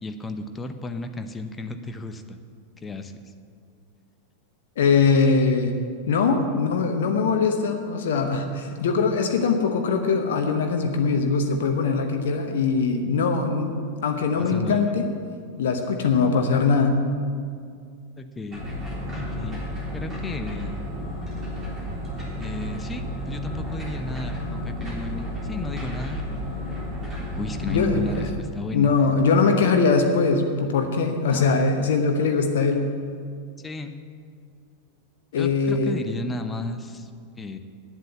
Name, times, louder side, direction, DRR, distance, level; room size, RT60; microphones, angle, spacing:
voice 1, 0.0-2.4 2.8-3.3 6.4-6.5 14.4-14.9 18.2-18.6 19.1-19.6 19.9-20.8 22.4-26.2 27.3-28.9 31.3-31.5 33.6-33.9 35.4-37.6, left 2 dB, 15° left, 7 dB, 0.7 m, -33 dB
voice 2, 4.8-5.8 6.1-15.1 15.6-17.0 27.7-28.0 28.7-32.9 35.3-36.0, left 4 dB, 60° left, 5 dB, 0.9 m, -22 dB
sound 1, 18.5-28.3, left 1 dB, 25° right, 3.4 m, -32 dB
9.3 x 7.7 x 8.2 m, 2.2 s
figure-of-eight pair, 90°, 0 cm